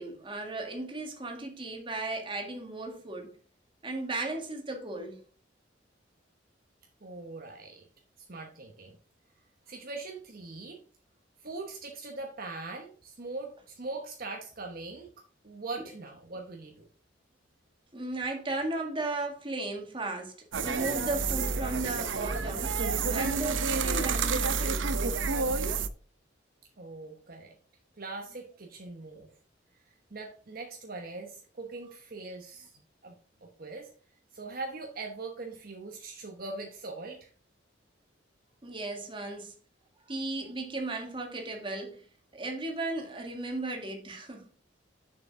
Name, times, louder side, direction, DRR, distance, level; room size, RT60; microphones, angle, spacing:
voice 1, 0.0-3.3 3.8-5.2 17.9-24.9 38.6-39.5 40.1-42.0 42.3-44.5, right 2 dB, 25° right, 1.9 m, -35 dB
voice 2, 7.0-7.8 8.3-9.0 9.7-10.8 11.4-15.1 15.4-16.8 26.8-27.5 28.0-29.3 30.1-32.7 33.0-33.9 34.3-37.3, right 3 dB, 50° right, 1.1 m, -41 dB
sound 1, 20.5-25.9, right 4 dB, 85° right, 0.7 m, -29 dB
6.9 x 6.8 x 3.7 m
head